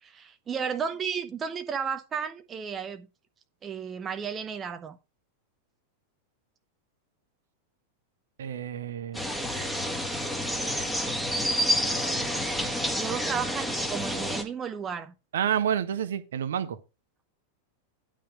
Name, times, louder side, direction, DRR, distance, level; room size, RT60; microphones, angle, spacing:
voice 1, 0.0-3.1 3.6-5.0 13.0-15.1, right 7 dB, 20° right, 0.9 m, -33 dB
voice 2, 8.4-9.3 15.3-16.8, right 9 dB, 60° right, 1.1 m, -29 dB
sound 1, 9.1-14.4, equal, 5° left, 2.1 m, -29 dB
10.0 x 5.6 x 4.9 m
figure-of-eight pair, 90°, 0 cm